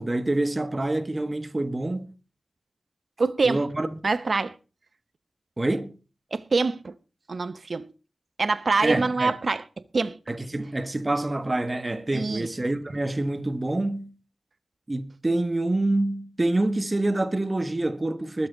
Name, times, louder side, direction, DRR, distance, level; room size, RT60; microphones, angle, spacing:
voice 1, 0.0-2.1 3.4-4.0 5.6-5.9 8.8-9.3 10.3-14.1 14.9-18.5, right 2 dB, 25° right, 1.3 m, -26 dB
voice 2, 3.2-3.6 4.0-4.5 6.3-6.9 7.3-7.9 8.4-9.6 9.9-10.2 12.1-12.5, right 3 dB, 55° right, 0.9 m, -25 dB
21.0 x 7.8 x 3.9 m
wide cardioid pair, 85°, 0 cm